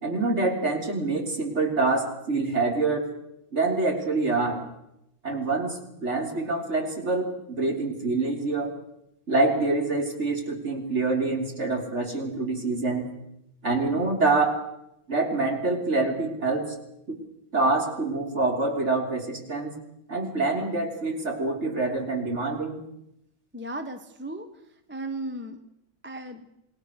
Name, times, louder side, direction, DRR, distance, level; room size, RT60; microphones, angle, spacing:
voice 1, 0.0-3.1 3.5-4.6 5.2-8.7 9.3-13.1 13.6-14.6 15.1-16.7 17.1-17.2 17.5-19.8 20.1-22.8, right 3 dB, 30° right, 2 dB, 3.7 m, -26 dB
voice 2, 23.5-24.5 24.9-25.6 26.0-26.5, right 1 dB, 10° right, 8 dB, 0.8 m, -35 dB
27.5 x 20.0 x 6.5 m, 0.81 s
omnidirectional pair, 2.3 m